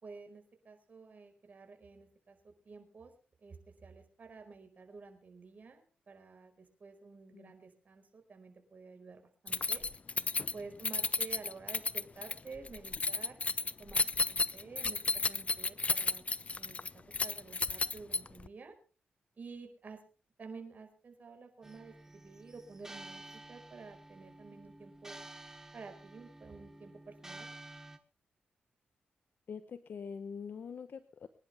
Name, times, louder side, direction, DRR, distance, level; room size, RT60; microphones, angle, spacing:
voice 1, 0.0-3.1 3.4-9.8 10.5-13.3 13.8-16.2 16.5-18.7 19.4-20.0 20.4-25.2 25.7-27.5, right 4 dB, 50° right, 5 dB, 4.9 m, -51 dB
Keys jangling, 9.5-18.5, left 4 dB, 40° left, 0.7 m, -33 dB
sound 1, 21.6-28.0, right 2 dB, 15° right, 1.7 m, -51 dB
voice 2, 29.5-31.3, left 6 dB, 70° left, 11 dB, 1.0 m, -44 dB
24.5 x 11.0 x 3.5 m, 0.36 s
cardioid pair, 70°, 3 cm